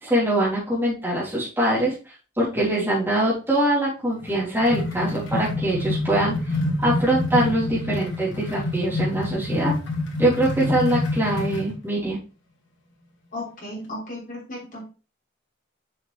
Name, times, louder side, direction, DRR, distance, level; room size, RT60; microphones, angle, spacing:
voice 1, 0.0-1.9 2.4-6.6 6.8-9.7 10.2-12.2, right 1 dB, 10° right, -7 dB, 2.9 m, -23 dB
sound 1, 4.2-11.7, left 2 dB, 75° left, 2.3 m, -27 dB
voice 2, 13.3-14.9, left 1 dB, 45° left, -3 dB, 3.5 m, -35 dB
7.2 x 5.6 x 3.3 m, 0.34 s
head